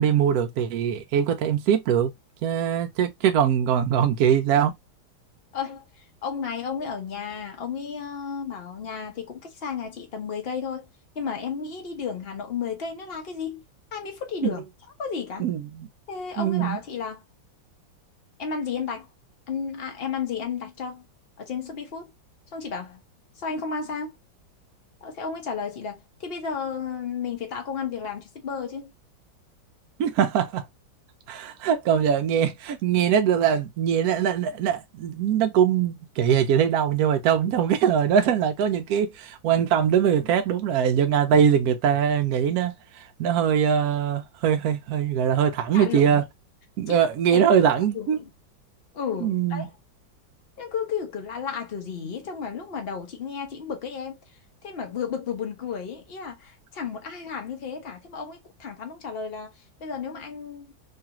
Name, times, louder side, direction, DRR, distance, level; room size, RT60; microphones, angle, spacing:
voice 1, 0.0-2.1 2.4-4.7 14.4-14.5 15.4-15.9 16.4-16.8 30.0-30.6 31.3-46.2 46.8-48.2 49.2-49.7, right 8 dB, 80° right, 0.8 m, -22 dB
voice 2, 5.5-10.9 11.1-13.6 13.9-14.6 15.0-15.5 16.1-17.2 18.4-19.1 19.5-21.0 21.4-22.1 22.5-23.0 23.4-24.2 25.0-28.9 45.7-46.2 46.9-47.0 47.3-48.3 48.9-49.7 50.6-54.2 54.6-59.5 59.8-60.7, left 6 dB, 60° left, 0.6 m, -33 dB
3.2 x 2.4 x 2.8 m
omnidirectional pair, 2.1 m